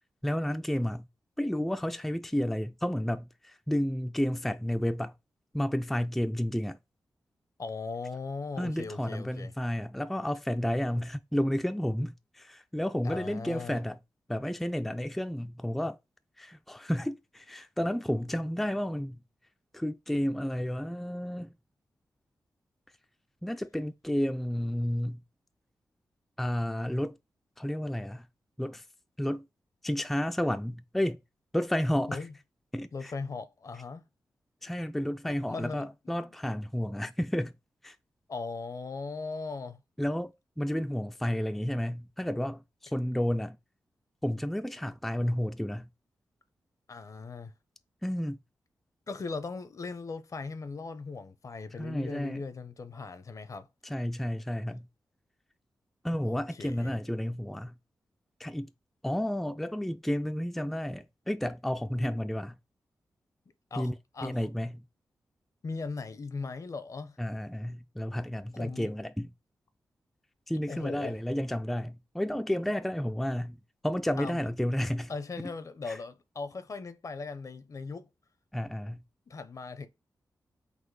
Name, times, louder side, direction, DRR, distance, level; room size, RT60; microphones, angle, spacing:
voice 1, 0.2-1.1 1.4-5.1 5.5-6.8 8.6-14.0 14.3-16.0 16.4-19.2 19.7-21.5 23.4-25.2 26.4-27.2 27.6-28.3 28.6-28.8 29.2-29.5 29.8-31.2 31.5-32.2 32.7-33.1 34.6-37.5 37.8-38.0 40.0-40.3 40.6-43.6 44.2-45.9 48.0-48.4 51.8-52.4 53.8-54.9 56.0-57.7 58.4-58.7 59.0-62.6 63.7-63.9 64.2-64.8 67.2-69.3 70.5-73.6 73.8-75.1 75.9-76.0 78.5-79.0, equal, ahead, 0.3 m, -31 dB
voice 2, 7.6-9.5 13.0-13.8 32.1-32.3 32.9-34.0 35.2-36.3 38.3-39.8 46.9-47.5 49.1-53.7 56.2-57.0 63.7-64.5 65.6-67.2 68.5-68.9 70.7-71.2 74.2-74.5 75.1-78.1 79.3-79.9, left 4 dB, 50° left, 0.6 m, -39 dB
4.1 x 2.5 x 4.7 m
cardioid pair, 65°, 7 cm